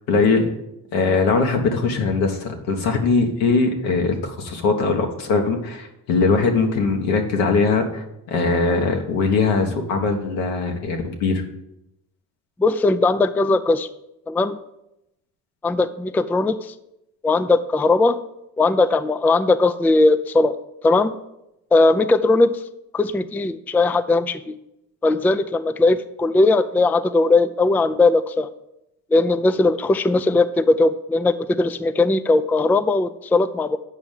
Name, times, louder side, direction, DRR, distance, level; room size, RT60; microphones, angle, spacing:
voice 1, 0.1-0.4 0.9-11.4, left 4 dB, 85° left, 3 dB, 1.4 m, -21 dB
voice 2, 12.6-13.9 14.3-14.6 15.6-16.7 17.2-18.2 18.6-20.6 20.8-21.1 21.7-22.6 22.9-24.5 25.0-28.5 29.1-33.8, left 2 dB, 5° left, 12 dB, 0.3 m, -19 dB
7.2 x 5.3 x 7.2 m, 0.86 s
hypercardioid pair, 55°, 46 cm